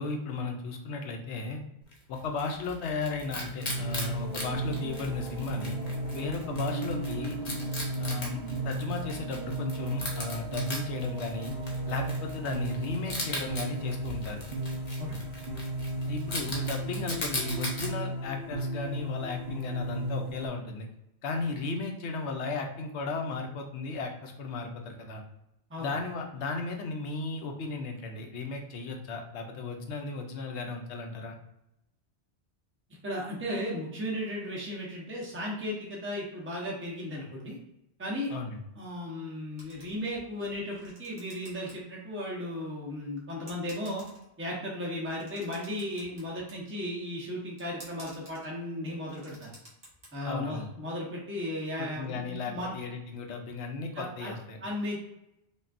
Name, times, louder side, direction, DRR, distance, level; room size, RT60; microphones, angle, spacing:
voice 1, 0.0-1.6 2.1-5.8 6.1-7.4 8.0-11.5 11.9-14.4 16.1-20.9 21.2-25.2 25.8-31.4 38.3-38.6 50.3-50.7 51.8-54.6, left 3 dB, 85° left, 3 dB, 1.0 m, -35 dB
Wild animals, 1.9-17.9, left 1 dB, 40° left, 0.9 m, -39 dB
sound 1, 3.6-20.5, right 1 dB, 70° right, 1.2 m, -35 dB
voice 2, 33.0-37.6 38.0-38.3 38.8-44.0 44.4-49.5 50.1-52.7 53.9-54.3 54.6-55.0, left 1 dB, 10° right, -4 dB, 0.9 m, -35 dB
sound 2, 39.6-40.3 40.6-41.7 42.1-42.2 43.0-43.1 43.5-44.4 45.0-46.6 47.6-48.5 48.9-50.1, equal, 45° right, 1.6 m, -52 dB
5.3 x 2.3 x 2.5 m, 0.84 s
omnidirectional pair, 1.1 m